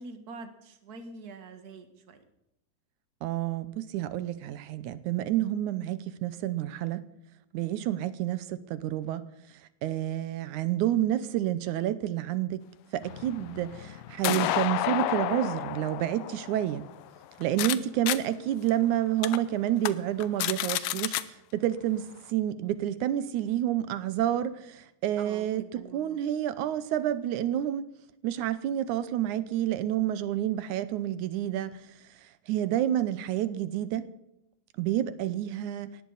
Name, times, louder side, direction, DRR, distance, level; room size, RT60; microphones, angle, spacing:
voice 1, 0.0-2.2 25.2-26.2, right 3 dB, 45° right, 1.3 m, -45 dB
voice 2, 3.2-7.0 7.5-9.2 9.8-12.7 12.9-16.8 17.4-27.9 28.2-31.8 32.5-34.1 34.8-36.0, right 12 dB, 75° right, 2.0 m, -29 dB
sound 1, 13.0-17.8 18.1-18.2 18.7-18.8 19.2-19.4 19.8-19.9 20.2-21.2, left 14 dB, 80° left, 2.4 m, -31 dB
18.5 x 14.5 x 4.0 m
omnidirectional pair, 3.9 m